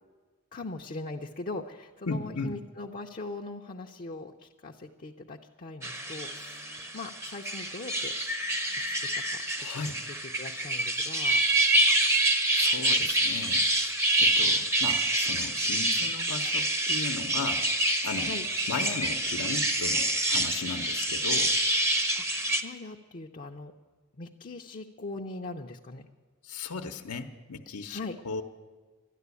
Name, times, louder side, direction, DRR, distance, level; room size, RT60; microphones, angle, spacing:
voice 1, 0.5-8.1 9.0-9.7 10.0-11.4 18.2-18.5 22.2-22.3 22.6-23.7 24.2-26.1 27.9-28.2, left 2 dB, 40° left, 2 dB, 0.6 m, -40 dB
voice 2, 2.1-2.5 9.6-10.0 12.5-17.7 18.0-18.3 18.7-21.5 26.4-28.0 28.2-28.4, left 4 dB, 85° left, 4 dB, 0.8 m, -36 dB
sound 1, 5.8-22.6, right 1 dB, 10° right, 0.7 m, -27 dB
12.5 x 10.5 x 8.3 m, 1.5 s
head